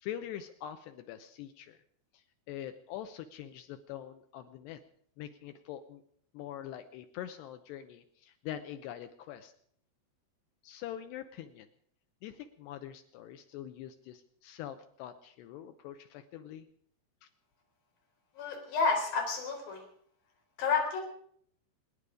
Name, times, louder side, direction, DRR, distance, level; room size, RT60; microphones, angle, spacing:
voice 1, 0.0-1.8 2.1-4.8 5.2-6.0 6.3-9.5 10.6-11.7 12.2-16.7 17.2-17.3, left 11 dB, 80° left, 8 dB, 2.5 m, -44 dB
voice 2, 18.4-19.9 20.6-21.0, left 4 dB, 50° left, 1 dB, 5.5 m, -30 dB
27.0 x 9.9 x 5.0 m, 0.63 s
omnidirectional pair, 5.5 m